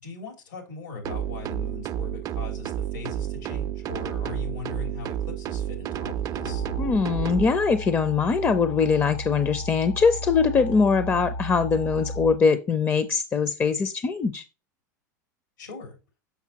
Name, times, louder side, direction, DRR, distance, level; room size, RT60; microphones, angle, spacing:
voice 1, 0.0-6.7 15.6-16.0, left 4 dB, 90° left, 3.1 m, -39 dB
sound 1, 1.0-7.5, right 10 dB, 40° right, 0.4 m, -31 dB
sound 2, 6.4-12.4, left 1 dB, 70° left, 0.7 m, -34 dB
voice 2, 6.8-14.4, left 5 dB, 25° left, 0.5 m, -22 dB
7.0 x 5.6 x 2.9 m
hypercardioid pair, 95°, 10 cm